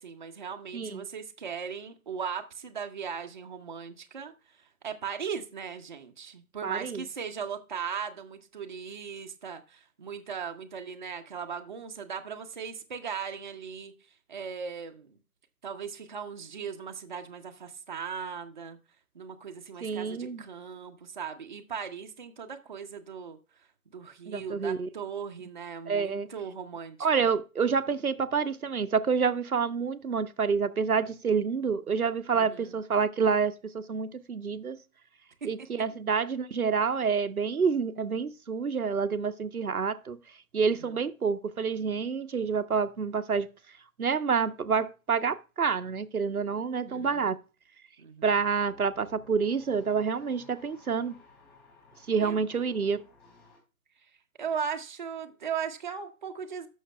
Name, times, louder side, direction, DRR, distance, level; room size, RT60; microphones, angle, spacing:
voice 1, 0.0-13.9 14.3-15.2 15.6-18.8 19.1-23.4 23.9-27.3 32.3-32.8 35.4-35.7 40.6-41.0 46.9-47.3 48.0-48.3 52.2-52.4 54.0-54.1 54.4-56.7, right 6 dB, 35° right, 0.8 m, -38 dB
voice 2, 6.6-7.0 19.8-20.4 24.3-24.9 25.9-26.3 27.0-34.8 35.4-40.2 40.5-43.5 44.0-47.4 48.2-51.2 52.1-53.0, right 5 dB, 85° right, 0.8 m, -28 dB
sound 1, 48.4-53.6, left 3 dB, 20° left, 3.8 m, -56 dB
15.5 x 6.4 x 2.2 m
figure-of-eight pair, 150°, 43 cm